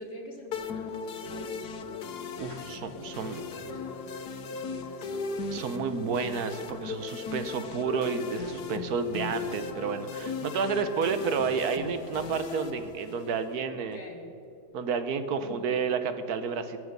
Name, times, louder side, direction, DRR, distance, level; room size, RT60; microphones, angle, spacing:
voice 1, 0.0-5.3 6.0-6.2 10.6-11.2 13.9-14.3 15.4-15.8, left 2 dB, 45° left, 1 dB, 2.1 m, -46 dB
sound 1, 0.5-13.6, left 5 dB, 90° left, 1.5 m, -37 dB
sound 2, 1.3-2.5 2.8-2.9 3.2-4.7 5.1-6.6 7.0-8.8, right 1 dB, 50° right, 3.1 m, -48 dB
voice 2, 2.4-3.4 5.5-14.0 14.7-16.8, right 5 dB, 75° right, 9 dB, 1.3 m, -31 dB
21.0 x 7.0 x 6.7 m, 2.6 s
omnidirectional pair, 1.7 m